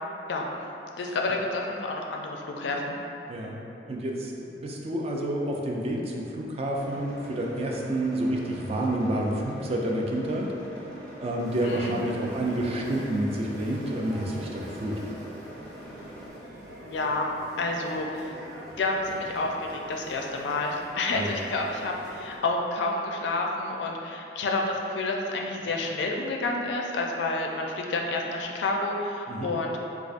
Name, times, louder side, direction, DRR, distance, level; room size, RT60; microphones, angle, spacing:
voice 1, 1.0-3.0 11.6-12.0 16.8-18.3 18.8-29.8, left 2 dB, 80° left, 1 dB, 0.4 m, -29 dB
voice 2, 3.9-15.0 21.1-21.4 29.3-29.5, right 1 dB, 35° right, -1 dB, 0.4 m, -29 dB
sound 1, 6.8-16.3, equal, 5° left, 0.7 m, -44 dB
sound 2, 11.4-22.4, right 1 dB, 65° right, 0.8 m, -45 dB
4.5 x 2.4 x 2.4 m, 2.9 s
head